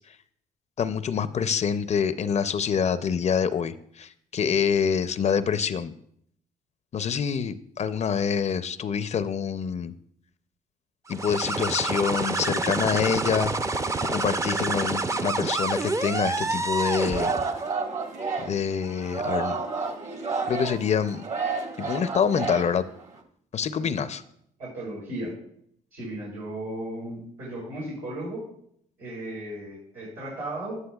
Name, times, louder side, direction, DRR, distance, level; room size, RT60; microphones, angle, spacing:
voice 1, 0.8-5.9 6.9-9.9 11.1-13.5 14.0-17.4 18.4-19.6 20.5-21.2 21.8-22.8 23.5-24.2, left 7 dB, 45° left, 13 dB, 0.5 m, -26 dB
sound 1, 11.1-17.6, right 3 dB, 20° right, 0.5 m, -28 dB
Singing, 16.8-23.2, right 4 dB, 50° right, 1.6 m, -31 dB
voice 2, 23.7-24.1 24.6-25.3 25.9-28.5 29.0-30.8, right 1 dB, 85° right, -8 dB, 4.1 m, -35 dB
11.0 x 9.6 x 2.3 m, 0.68 s
supercardioid pair, 70°, 16 cm